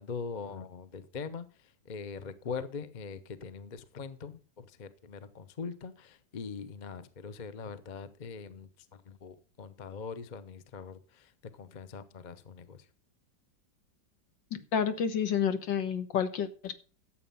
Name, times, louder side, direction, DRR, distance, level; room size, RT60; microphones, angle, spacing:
voice 1, 0.0-12.8, left 5 dB, 40° left, 0.6 m, -42 dB
voice 2, 14.5-16.8, left 7 dB, 70° left, 1.9 m, -30 dB
13.0 x 7.8 x 5.5 m
omnidirectional pair, 2.1 m